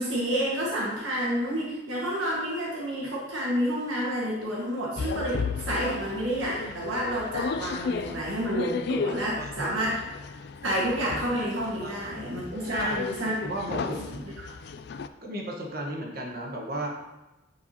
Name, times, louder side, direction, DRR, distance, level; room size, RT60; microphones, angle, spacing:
voice 1, 0.0-10.0 10.6-13.3 13.8-13.9, equal, 75° right, -5 dB, 1.6 m, -29 dB
sound 1, 5.0-15.1, left 5 dB, 55° left, 0.3 m, -35 dB
voice 2, 9.3-9.6 11.8-12.2 12.6-14.2 15.2-16.9, right 1 dB, 45° right, -1 dB, 1.3 m, -35 dB
9.6 x 4.7 x 2.9 m, 1.1 s
head